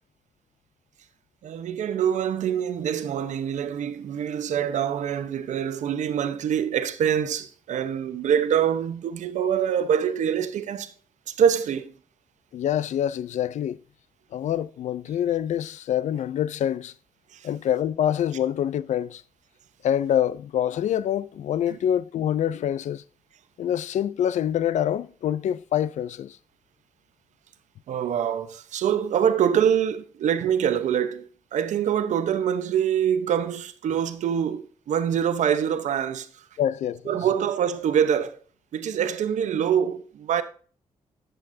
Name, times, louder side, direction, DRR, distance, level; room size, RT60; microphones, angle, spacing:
voice 1, 1.4-10.9 11.3-11.9 17.3-17.5 21.7-21.8 27.9-36.4 37.1-38.4 38.7-40.4, right 8 dB, 80° right, 0.9 m, -25 dB
voice 2, 12.5-13.8 14.3-16.9 17.4-19.2 19.8-23.0 23.6-26.4 36.6-37.2, left 10 dB, 80° left, 0.5 m, -26 dB
11.5 x 7.9 x 2.7 m
cardioid pair, 60°, 12 cm